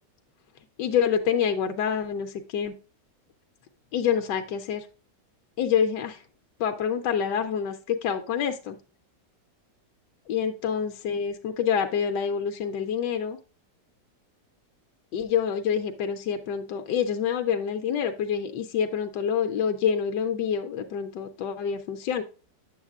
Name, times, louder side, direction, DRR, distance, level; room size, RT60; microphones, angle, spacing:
voice 1, 0.8-2.7 3.9-4.8 5.6-6.2 6.6-8.8 10.3-13.4 15.1-22.2, left 7 dB, 75° left, 6 dB, 1.2 m, -27 dB
8.2 x 7.2 x 2.3 m, 0.34 s
omnidirectional pair, 1.9 m